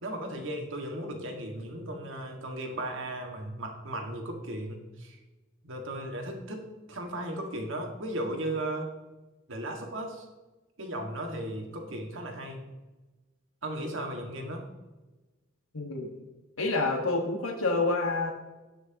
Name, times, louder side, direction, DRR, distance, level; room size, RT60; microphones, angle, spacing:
voice 1, 0.0-5.2 5.6-8.9 9.5-10.3 10.8-12.6 13.6-14.7, right 1 dB, 65° right, 2 dB, 1.9 m, -36 dB
voice 2, 15.7-16.1 16.6-18.3, left 3 dB, 80° left, 2 dB, 1.5 m, -28 dB
18.0 x 6.2 x 2.9 m, 1.1 s
head